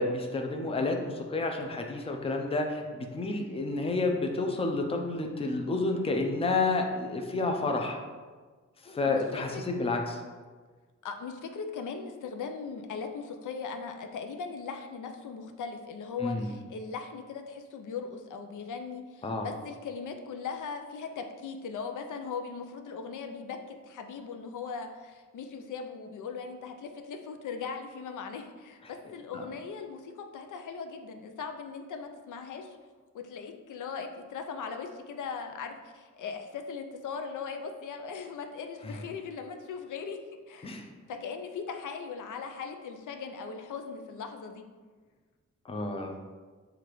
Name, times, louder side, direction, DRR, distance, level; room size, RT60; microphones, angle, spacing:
voice 1, 0.0-8.0 8.8-10.2 16.2-16.5 19.2-19.5 29.3-29.4 40.6-40.9 45.7-46.1, left 3 dB, 20° left, 2 dB, 0.4 m, -30 dB
voice 2, 11.0-23.6 23.8-32.8 33.1-40.2 40.5-40.8 41.1-44.6, left 5 dB, 85° left, 5 dB, 0.5 m, -39 dB
6.5 x 2.4 x 3.0 m, 1.4 s
wide cardioid pair, 110°, 30 cm